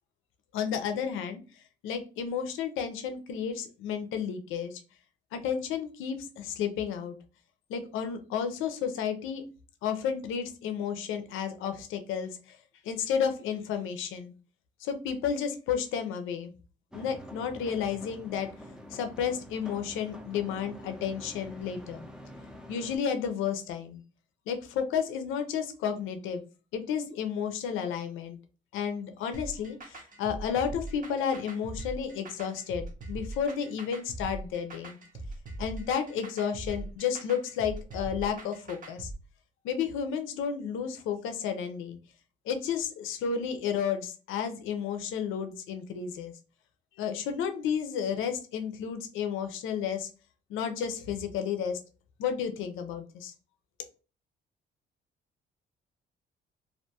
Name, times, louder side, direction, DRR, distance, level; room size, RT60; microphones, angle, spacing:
voice 1, 0.5-1.4 1.8-4.8 5.3-7.2 7.7-9.4 9.8-12.6 12.8-14.3 14.8-16.5 16.9-18.5 18.9-22.1 22.7-24.0 24.5-26.4 26.7-28.4 28.7-35.0 35.6-39.1 39.6-42.0 42.5-46.3 47.0-50.1 50.5-51.8 52.2-53.3, left 7 dB, 90° left, 7 dB, 0.4 m, -32 dB
sound 1, 16.9-23.0, equal, 5° right, 0.5 m, -46 dB
sound 2, 29.3-39.1, right 2 dB, 40° right, 0.7 m, -41 dB
2.4 x 2.2 x 2.7 m, 0.35 s
cardioid pair, 90°, 20 cm